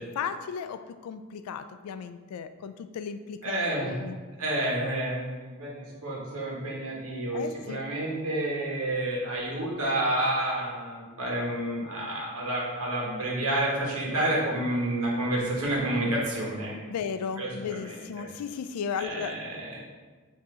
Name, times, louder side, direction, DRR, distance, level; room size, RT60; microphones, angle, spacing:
voice 1, 0.2-3.5 3.8-4.2 7.3-7.8 16.9-19.4, left 6 dB, 85° left, 14 dB, 0.3 m, -35 dB
voice 2, 3.4-4.0 4.4-16.7 17.4-18.3 19.0-19.8, right 1 dB, 75° right, -4 dB, 1.2 m, -29 dB
4.8 x 2.8 x 3.6 m, 1.4 s
head